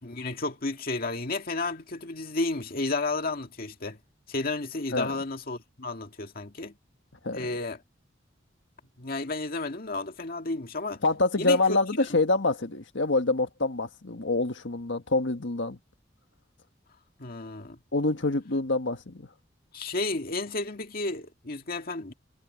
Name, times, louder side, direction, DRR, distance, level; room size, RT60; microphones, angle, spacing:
voice 1, 0.0-4.0 4.3-6.8 7.3-7.8 9.0-11.0 11.4-11.8 17.2-17.8 19.7-22.1, left 3 dB, 50° left, 1.9 m, -32 dB
voice 2, 11.0-15.8 17.9-19.3, left 2 dB, 75° left, 1.6 m, -26 dB
head